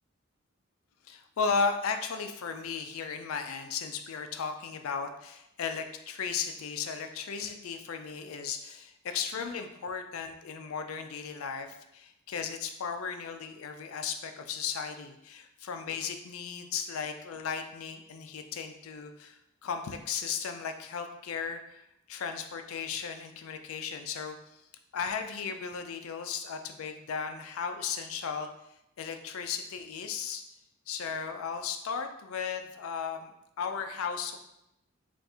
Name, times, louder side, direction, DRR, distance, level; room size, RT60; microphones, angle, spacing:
voice 1, 1.0-11.7 11.9-21.8 22.1-24.4 24.9-28.5 29.0-30.4 30.9-33.3 33.6-34.4, left 6 dB, 90° left, 6 dB, 0.4 m, -35 dB
4.2 x 2.5 x 3.5 m, 0.83 s
head